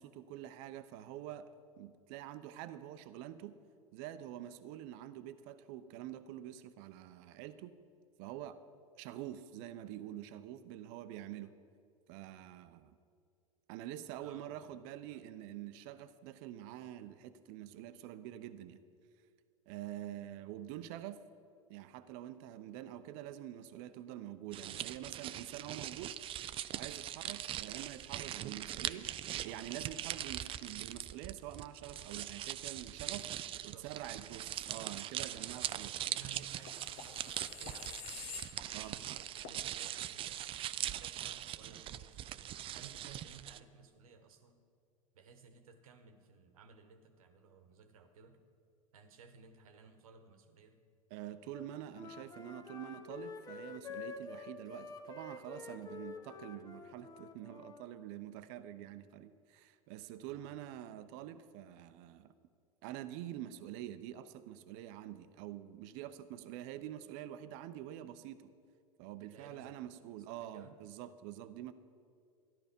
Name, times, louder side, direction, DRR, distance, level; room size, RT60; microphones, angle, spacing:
voice 1, 0.0-1.5 1.8-3.6 3.9-7.8 8.2-8.6 9.0-11.5 12.1-12.9 13.7-18.8 19.7-21.2 21.7-26.2 26.7-29.1 29.4-33.3 33.6-35.9 38.7-39.0 51.1-62.3 62.8-68.5 69.0-71.7, right 12 dB, 55° right, 12 dB, 0.7 m, -46 dB
voice 2, 14.2-15.2 33.5-33.9 35.3-40.5 40.8-44.6 45.1-48.4 48.9-50.8 60.3-60.5 69.2-69.9 70.3-70.7, right 5 dB, 75° right, 8 dB, 1.2 m, -58 dB
sound 1, 24.5-43.6, right 12 dB, 30° right, 0.4 m, -41 dB
sound 2, 36.1-39.1 39.4-39.6, left 6 dB, 60° left, 1.3 m, -49 dB
Wind instrument woodwind instrument, 51.5-57.9, left 4 dB, 20° left, 1.0 m, -48 dB
13.5 x 11.5 x 5.2 m, 2.3 s
hypercardioid pair, 90°, 18 cm